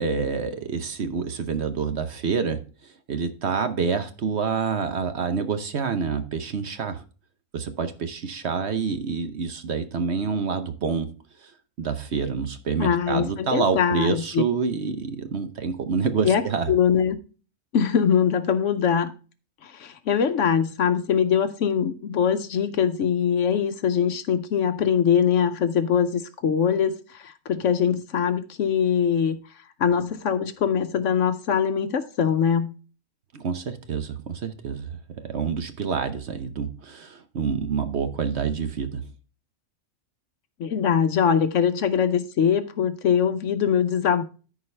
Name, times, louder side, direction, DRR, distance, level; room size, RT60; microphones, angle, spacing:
voice 1, 0.0-7.0 7.5-11.1 11.4-11.5 11.8-16.7 33.3-39.0, right 5 dB, 55° right, 1.0 m, -27 dB
voice 2, 12.8-14.4 16.2-17.2 17.7-19.1 19.6-29.4 29.8-32.7 40.6-44.2, left 7 dB, 65° left, 0.9 m, -22 dB
13.5 x 4.8 x 3.3 m
omnidirectional pair, 1.5 m